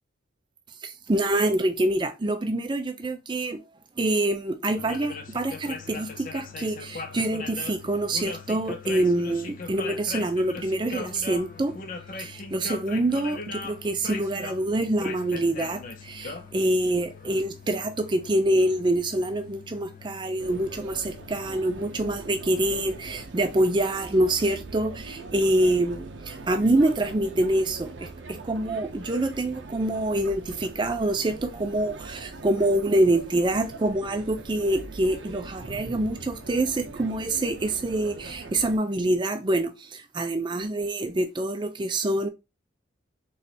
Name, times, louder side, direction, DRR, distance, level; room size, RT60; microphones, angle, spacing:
voice 1, 0.8-3.6 4.0-11.7 12.2-42.3, right 1 dB, 25° right, 0.4 m, -26 dB
sound 1, 4.8-23.3, left 4 dB, 45° left, 0.5 m, -40 dB
sound 2, 20.4-38.8, right 3 dB, 65° right, 0.6 m, -41 dB
4.0 x 3.2 x 2.8 m
head